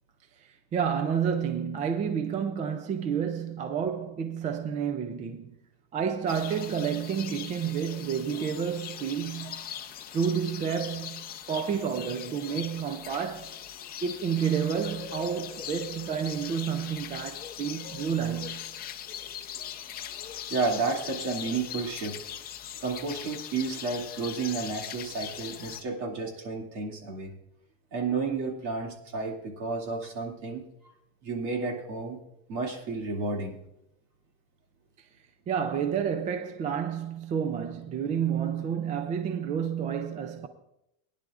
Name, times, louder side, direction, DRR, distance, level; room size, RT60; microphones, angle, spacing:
voice 1, 0.4-5.6 5.9-9.6 10.1-13.5 14.0-18.6 35.0-35.1 35.5-40.5, right 7 dB, 20° right, 0.4 m, -30 dB
sound 1, 6.3-25.8, left 10 dB, 25° left, 0.6 m, -41 dB
voice 2, 20.5-22.2 22.8-27.3 27.9-30.6 31.2-32.2 32.5-33.6, right 4 dB, 55° right, 2.5 m, -31 dB
21.0 x 10.5 x 2.4 m
cardioid pair, 165°, 35 cm